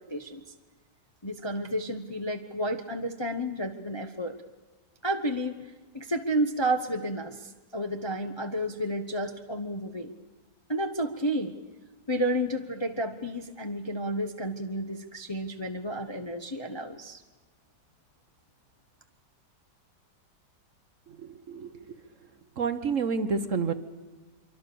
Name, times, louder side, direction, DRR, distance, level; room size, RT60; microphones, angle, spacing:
voice 1, 0.1-0.4 1.2-4.3 5.0-5.7 5.9-10.1 10.7-11.5 12.1-17.2, right 1 dB, 20° left, 4 dB, 0.8 m, -31 dB
voice 2, 21.2-21.7 22.6-23.7, right 5 dB, 50° right, 10 dB, 1.2 m, -29 dB
25.0 x 24.0 x 6.9 m, 1.2 s
omnidirectional pair, 1.9 m